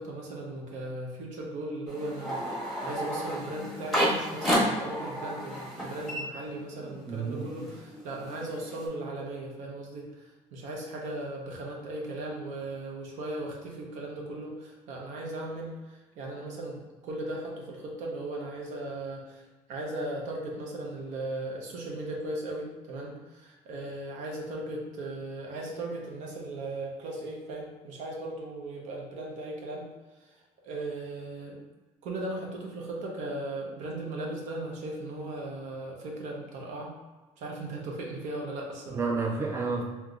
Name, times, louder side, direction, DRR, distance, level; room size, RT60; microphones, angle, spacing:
voice 1, 0.0-2.5 2.8-19.4 19.7-29.9 30.2-31.6 32.0-36.9 37.4-39.0, right 2 dB, 80° right, 0 dB, 0.7 m, -37 dB
sound 1, 1.9-7.0 7.3-8.9, equal, ahead, 1.1 m, -31 dB
voice 2, 6.8-7.5 38.9-39.8, right 4 dB, 20° right, 0 dB, 0.5 m, -31 dB
3.5 x 2.8 x 2.4 m, 1.2 s
cardioid pair, 115°, 12 cm